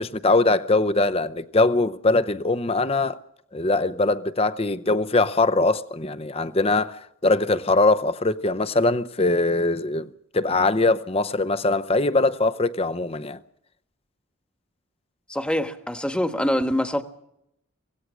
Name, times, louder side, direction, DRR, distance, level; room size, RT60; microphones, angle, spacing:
voice 1, 0.0-3.2 3.5-13.4, left 2 dB, 25° left, 0.7 m, -22 dB
voice 2, 15.3-17.0, equal, 5° left, 1.3 m, -24 dB
25.0 x 18.0 x 6.3 m
head